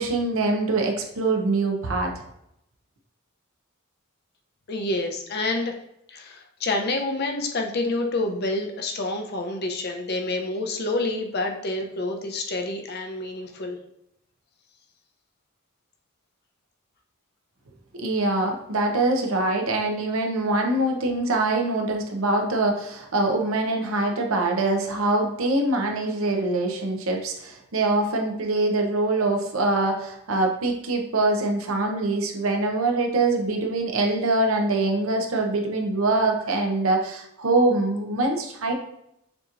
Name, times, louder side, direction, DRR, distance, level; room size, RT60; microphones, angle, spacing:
voice 1, 0.0-2.1 18.0-38.7, right 2 dB, 75° right, 3 dB, 0.8 m, -24 dB
voice 2, 4.7-5.7 6.1-13.8, left 2 dB, 50° left, 3 dB, 0.6 m, -28 dB
6.9 x 2.9 x 2.5 m, 0.80 s
head